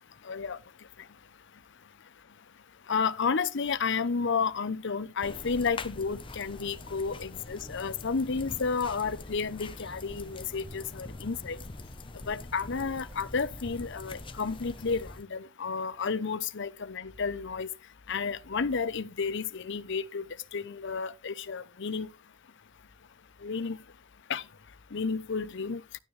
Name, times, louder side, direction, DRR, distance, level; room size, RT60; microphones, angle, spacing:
voice 1, 0.2-0.6 2.9-11.6 12.3-17.7 18.1-20.3 20.5-22.1 23.4-23.8 24.3-24.4 24.9-25.8, left 5 dB, 60° left, 0.7 m, -31 dB
sound 1, 5.2-15.2, left 2 dB, 25° left, 0.8 m, -44 dB
11.5 x 9.6 x 3.2 m
head